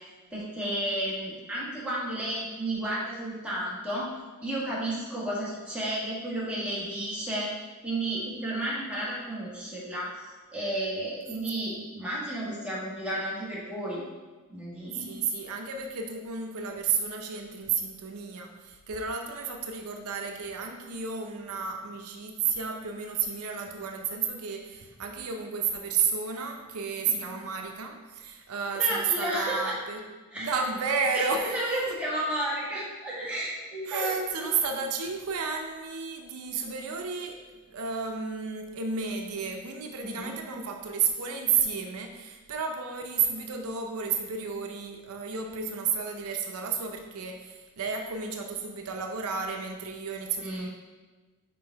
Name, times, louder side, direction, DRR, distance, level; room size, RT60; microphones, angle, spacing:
voice 1, 0.3-4.1 4.4-7.5 7.8-14.0 14.5-15.2 27.0-27.1 28.7-29.8 30.3-30.6 31.1-34.5 40.0-40.3 50.4-50.7, right 1 dB, 5° right, -7 dB, 1.6 m, -32 dB
voice 2, 14.9-30.0 30.3-31.5 33.9-50.7, right 6 dB, 80° right, 4 dB, 0.6 m, -32 dB
5.2 x 4.8 x 4.5 m, 1.3 s
head